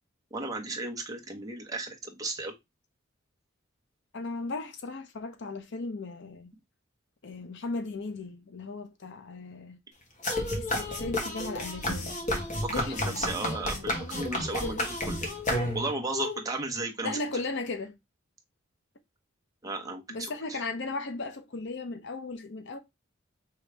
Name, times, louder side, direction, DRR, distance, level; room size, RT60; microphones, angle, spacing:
voice 1, 0.3-2.5 12.5-15.3 15.7-17.2 19.6-20.6, right 2 dB, 20° right, 1.0 m, -35 dB
voice 2, 4.1-6.5 7.2-9.8 10.6-12.2 12.7-13.4 14.5-14.9 16.1-16.4 17.0-18.0 20.1-22.8, left 3 dB, 60° left, 0.7 m, -36 dB
sound 1, 10.2-16.1, left 1 dB, 40° left, 1.3 m, -31 dB
4.7 x 3.1 x 3.3 m
head